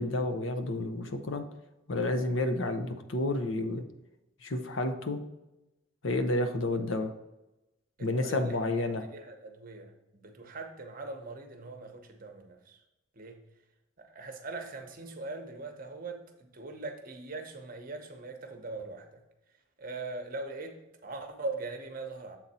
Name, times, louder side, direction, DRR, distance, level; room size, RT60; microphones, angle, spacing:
voice 1, 0.0-1.4 1.9-3.8 4.4-5.2 6.0-7.1 8.0-9.0, left 2 dB, 75° left, 8 dB, 0.8 m, -30 dB
voice 2, 8.0-8.6 9.1-12.8 13.1-13.4 14.0-19.2 19.8-20.8 21.0-22.4, right 3 dB, 45° right, 5 dB, 0.9 m, -41 dB
7.5 x 4.0 x 4.2 m, 0.96 s
head